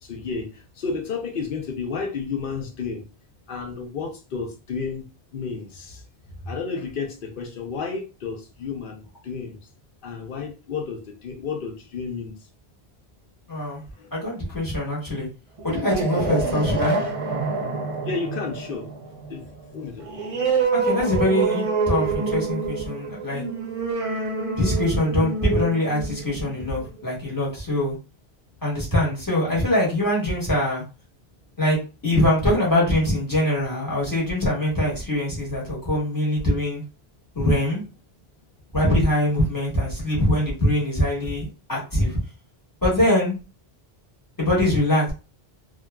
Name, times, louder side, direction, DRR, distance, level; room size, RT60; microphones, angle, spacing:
voice 1, 0.0-3.0 3.5-5.0 5.3-6.0 6.4-9.6 10.0-12.4 13.6-14.1 18.0-18.9 19.2-20.2 24.3-24.4, left 5 dB, 60° left, 0.8 m, -32 dB
voice 2, 13.5-13.8 14.1-15.3 15.6-17.0 20.7-23.4 24.6-27.9 28.6-30.8 31.6-36.8 37.3-37.8 38.7-42.2 42.8-43.3 44.4-45.1, left 1 dB, 20° left, 1.0 m, -23 dB
sound 1, 15.6-26.8, right 4 dB, 45° right, 0.5 m, -27 dB
2.7 x 2.3 x 2.2 m
omnidirectional pair, 1.1 m